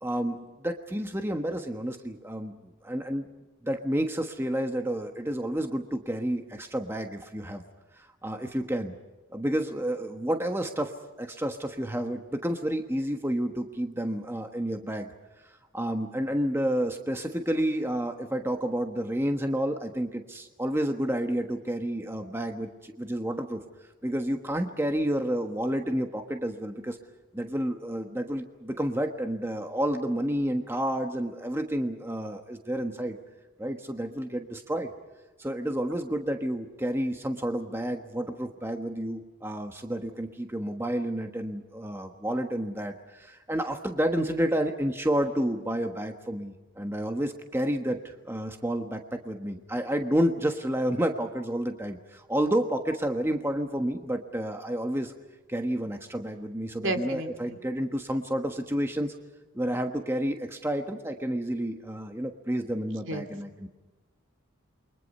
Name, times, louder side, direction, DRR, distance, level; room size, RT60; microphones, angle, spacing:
voice 1, 0.0-2.5 2.8-3.3 3.6-7.6 8.0-8.9 9.3-15.1 15.7-23.6 24.0-27.0 27.3-33.2 33.6-34.9 35.4-55.1 55.5-59.1 59.5-63.7, right 1 dB, 10° right, 5 dB, 1.3 m, -30 dB
voice 2, 56.8-57.6 63.1-63.2, right 1 dB, 65° right, 6 dB, 2.7 m, -32 dB
28.5 x 23.5 x 5.5 m, 1.1 s
head